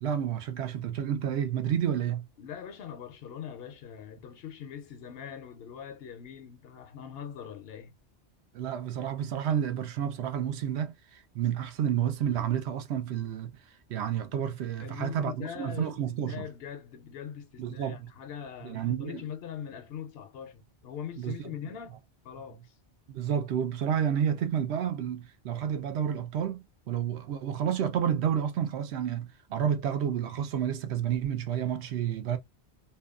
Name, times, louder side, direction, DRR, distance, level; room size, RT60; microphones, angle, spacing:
voice 1, 0.0-2.3 8.5-13.5 13.9-16.5 17.6-18.0 18.6-19.2 21.2-21.3 23.1-32.4, right 9 dB, 75° right, 0.8 m, -30 dB
voice 2, 2.4-7.9 14.8-22.0 22.2-22.8, left 8 dB, 65° left, 0.7 m, -42 dB
2.7 x 2.2 x 2.3 m
omnidirectional pair, 1.1 m